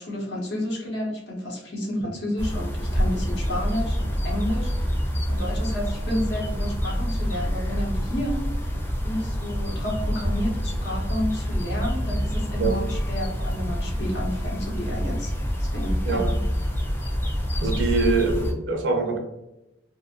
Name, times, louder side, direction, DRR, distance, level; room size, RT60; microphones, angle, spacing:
voice 1, 0.0-4.9 5.3-8.5 9.0-15.3 15.6-16.4, left 1 dB, 65° left, -2 dB, 0.8 m, -31 dB
sound 1, 2.4-18.5, equal, 10° left, 0.4 m, -27 dB
voice 2, 17.6-19.2, right 4 dB, 80° right, 2 dB, 0.5 m, -24 dB
2.5 x 2.0 x 2.7 m, 0.91 s
head